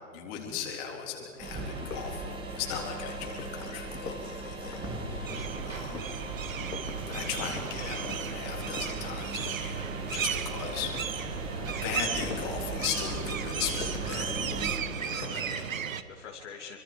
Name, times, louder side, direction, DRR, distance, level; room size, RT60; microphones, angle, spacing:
voice 1, 0.1-6.1 7.1-11.3 11.7-14.4 15.0-15.7, left 8 dB, 25° left, 1 dB, 3.8 m, -38 dB
sound 1, 0.8-0.9 1.3-9.8 10.1-10.5 10.8-15.5, left 4 dB, 80° left, 3.1 m, -44 dB
sound 2, 1.4-14.7, right 2 dB, 10° right, 2.3 m, -38 dB
sound 3, 5.2-16.0, right 8 dB, 60° right, 1.4 m, -35 dB
voice 2, 15.0-16.8, left 6 dB, 50° left, 1 dB, 2.8 m, -47 dB
26.5 x 25.5 x 5.3 m, 2.6 s
hypercardioid pair, 150°, 45 cm